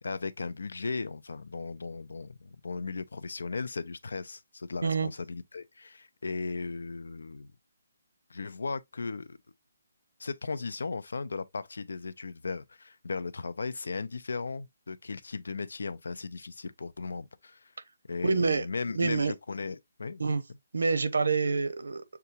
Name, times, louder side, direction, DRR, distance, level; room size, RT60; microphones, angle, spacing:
voice 1, 0.0-7.5 8.3-9.4 10.2-17.7 18.1-20.3, left 4 dB, 80° left, 0.5 m, -36 dB
voice 2, 18.2-18.7 19.0-19.3 20.2-20.4 20.7-22.0, right 4 dB, 85° right, 0.7 m, -27 dB
6.6 x 2.4 x 2.8 m
hypercardioid pair, 180°, 0 cm